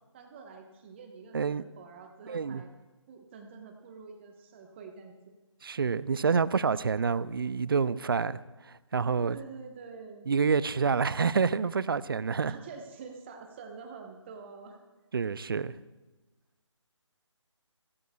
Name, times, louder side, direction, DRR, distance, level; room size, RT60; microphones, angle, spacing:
voice 1, 0.1-2.7 3.1-5.1 9.3-10.3 12.4-14.8, right 5 dB, 20° right, 4 dB, 1.2 m, -47 dB
voice 2, 2.3-2.6 5.6-8.4 8.6-9.4 10.3-12.5 15.1-15.7, right 5 dB, 45° right, 18 dB, 0.5 m, -28 dB
25.5 x 17.0 x 2.4 m, 1.2 s
figure-of-eight pair, 150°, 16 cm